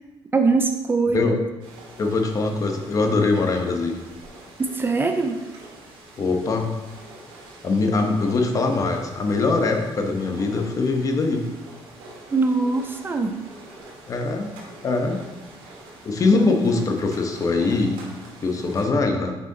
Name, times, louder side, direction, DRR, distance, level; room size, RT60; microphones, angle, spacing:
voice 1, 0.3-1.3 4.6-5.4 12.3-13.4 16.3-16.6, right 3 dB, 25° right, 6 dB, 0.5 m, -22 dB
voice 2, 1.1-1.4 2.0-4.0 6.2-6.7 7.6-11.5 14.1-14.5 14.8-15.2 16.0-18.0 18.4-19.4, left 3 dB, 35° left, 4 dB, 0.9 m, -22 dB
sound 1, 1.6-18.9, right 2 dB, 90° right, 1.8 m, -44 dB
6.6 x 4.9 x 3.8 m, 1.1 s
cardioid pair, 115°, 9 cm